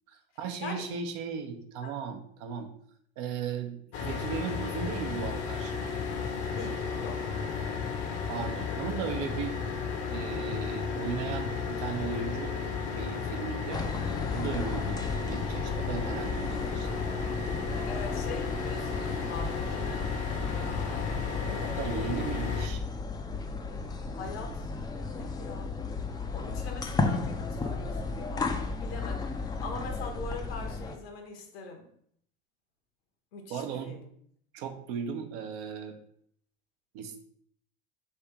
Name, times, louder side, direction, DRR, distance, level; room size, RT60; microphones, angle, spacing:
voice 1, 0.1-2.7 3.2-5.8 8.3-9.6 10.1-12.5 12.8-13.8 14.3-17.0 21.6-22.8 33.5-33.9 34.5-36.0 36.9-37.2, right 6 dB, 65° right, 6 dB, 0.8 m, -36 dB
voice 2, 0.6-0.9 1.8-1.9 6.5-7.2 17.9-20.1 20.4-22.0 24.1-24.7 25.1-25.7 26.3-31.9 33.3-34.1, left 4 dB, 85° left, 4 dB, 1.1 m, -42 dB
sound 1, 3.9-22.7, left 5 dB, 55° left, 0.8 m, -33 dB
sound 2, 13.7-31.0, left 3 dB, 15° left, 0.4 m, -34 dB
3.4 x 2.8 x 4.6 m, 0.65 s
supercardioid pair, 110°, 29 cm